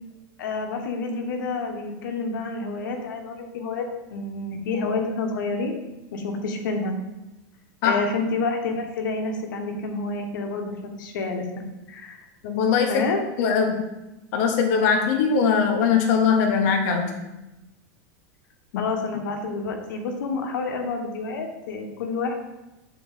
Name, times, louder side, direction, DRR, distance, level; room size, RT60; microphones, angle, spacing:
voice 1, 0.4-5.8 6.1-7.0 7.8-11.4 11.9-12.2 12.9-13.3 18.8-22.3, left 3 dB, 85° left, 4 dB, 1.1 m, -29 dB
voice 2, 12.4-13.1 13.4-13.9 14.3-17.1 18.7-18.8, left 6 dB, 55° left, 3 dB, 0.9 m, -21 dB
6.3 x 4.0 x 4.0 m, 1.0 s
supercardioid pair, 155°, 10 cm